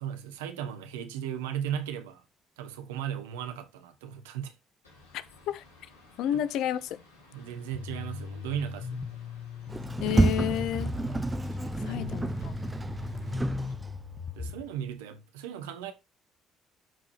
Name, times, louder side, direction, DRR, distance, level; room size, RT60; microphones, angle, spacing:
voice 1, 0.0-2.2 2.6-4.5 6.3-6.4 7.3-9.1 11.8-12.2 14.4-15.9, right 9 dB, 80° right, 1.2 m, -36 dB
sound 1, 4.8-13.7, left 2 dB, 90° left, 2.6 m, -57 dB
voice 2, 5.1-5.6 6.2-7.0 10.0-10.9 11.8-12.5, left 11 dB, 65° left, 0.7 m, -31 dB
sound 2, 7.7-14.6, left 5 dB, 45° left, 1.4 m, -38 dB
Sliding door, 9.7-14.2, right 2 dB, 20° right, 0.6 m, -29 dB
12.5 x 4.9 x 3.2 m
hypercardioid pair, 50°, 0 cm